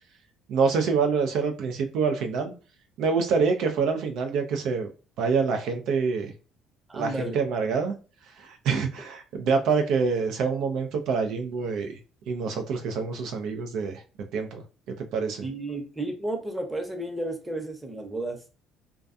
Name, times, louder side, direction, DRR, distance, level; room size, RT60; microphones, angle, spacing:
voice 1, 0.5-2.5 3.0-4.9 5.2-6.3 6.9-7.9 8.3-12.0 12.3-14.0 14.3-15.5, right 5 dB, 70° right, 5 dB, 0.4 m, -26 dB
voice 2, 6.9-7.4 15.4-18.4, right 2 dB, 15° right, 3 dB, 0.7 m, -32 dB
2.3 x 2.2 x 2.5 m, 0.35 s
supercardioid pair, 75°, 0 cm